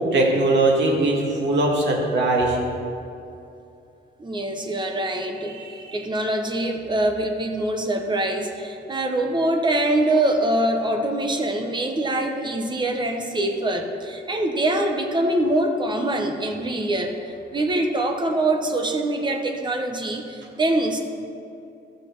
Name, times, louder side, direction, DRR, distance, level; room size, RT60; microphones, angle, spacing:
voice 1, 0.1-2.6 5.6-6.0, right 2 dB, 65° right, -1 dB, 1.8 m, -21 dB
voice 2, 4.2-5.6 5.9-17.1 17.5-21.0, right 1 dB, 25° right, 4 dB, 0.9 m, -24 dB
13.5 x 6.4 x 4.5 m, 2.6 s
wide cardioid pair, 175°, 19 cm